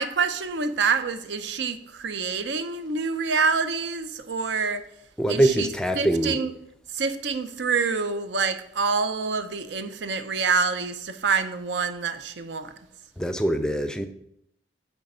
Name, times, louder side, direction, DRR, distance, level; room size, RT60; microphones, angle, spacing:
voice 1, 0.0-4.9 5.3-5.7 6.0-6.5 6.9-12.7, right 5 dB, 90° right, 0.6 m, -26 dB
voice 2, 5.2-6.4 13.2-14.1, right 1 dB, 5° left, 0.4 m, -23 dB
8.9 x 3.4 x 5.4 m
head